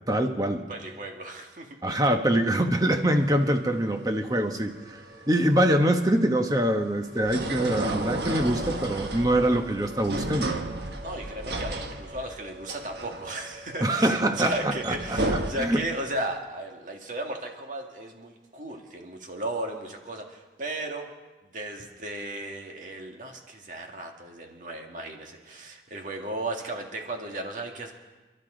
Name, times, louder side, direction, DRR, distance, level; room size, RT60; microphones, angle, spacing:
voice 1, 0.1-0.6 1.8-5.0 5.3-10.5 13.8-15.8, right 1 dB, 20° right, 5 dB, 1.1 m, -24 dB
voice 2, 0.7-1.8 11.0-21.1 21.5-27.9, right 1 dB, 45° right, 2 dB, 1.9 m, -35 dB
sound 1, 3.0-15.5, right 2 dB, 70° right, 1.3 m, -34 dB
28.5 x 12.0 x 3.9 m, 1.2 s
head